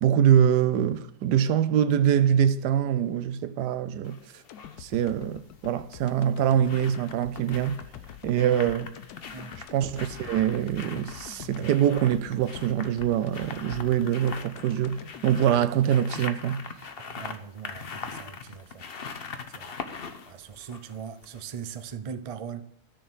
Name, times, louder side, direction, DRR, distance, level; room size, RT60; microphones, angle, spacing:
voice 1, 0.0-4.2 4.8-7.8 8.2-8.9 9.7-16.6, right 9 dB, 90° right, 1.3 m, -24 dB
sound 1, 4.0-4.8 6.0-21.6 21.9-22.0, left 5 dB, 45° left, 1.0 m, -42 dB
sound 2, 4.5-16.7 17.1-17.2, left 11 dB, 75° left, 1.1 m, -46 dB
voice 2, 17.1-18.9 19.5-19.8 20.3-22.7, right 7 dB, 55° right, 0.3 m, -40 dB
14.0 x 6.6 x 6.2 m
omnidirectional pair, 1.7 m